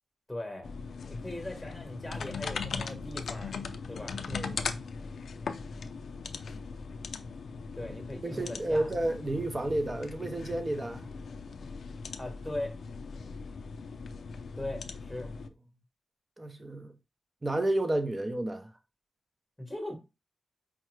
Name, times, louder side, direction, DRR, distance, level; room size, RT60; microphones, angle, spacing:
voice 1, 0.3-0.7 1.1-3.6 3.9-4.2 7.7-9.0 12.2-12.7 14.6-15.3 19.6-19.9, left 1 dB, 5° left, 1.0 m, -39 dB
sound 1, 0.6-15.5, left 5 dB, 75° left, 0.4 m, -39 dB
voice 2, 4.3-4.6 8.2-11.1 16.4-16.9 17.4-18.7, right 1 dB, 25° right, 0.5 m, -31 dB
4.7 x 2.1 x 3.1 m
wide cardioid pair, 105°, 0 cm